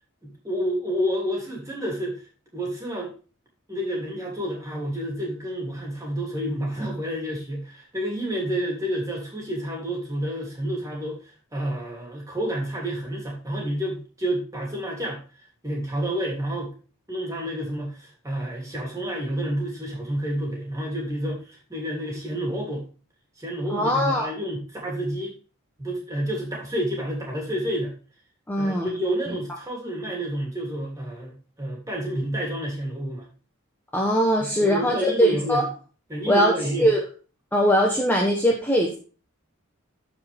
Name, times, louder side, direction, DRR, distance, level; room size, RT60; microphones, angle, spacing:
voice 1, 0.2-2.2 2.5-3.1 3.7-15.2 15.6-16.7 17.1-22.8 23.4-25.4 25.8-27.9 28.6-33.3 34.4-35.7 36.1-36.9, equal, 15° right, -1 dB, 3.0 m, -29 dB
voice 2, 23.7-24.3 28.5-28.9 33.9-35.6 36.3-37.0 37.5-38.9, equal, 10° left, -1 dB, 1.0 m, -21 dB
14.0 x 4.9 x 3.5 m, 0.36 s
head